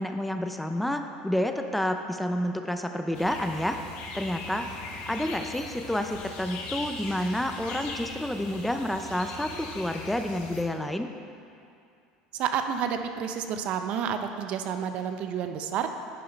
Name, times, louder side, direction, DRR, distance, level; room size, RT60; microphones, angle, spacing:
voice 1, 0.0-3.8 4.1-4.7 5.1-11.1, left 1 dB, 5° left, 6 dB, 0.5 m, -29 dB
sound 1, 3.1-10.6, left 3 dB, 65° left, 1.2 m, -40 dB
voice 2, 12.3-15.9, right 8 dB, 55° right, 7 dB, 0.6 m, -30 dB
10.0 x 5.6 x 4.4 m, 2.5 s
supercardioid pair, 105°, 2 cm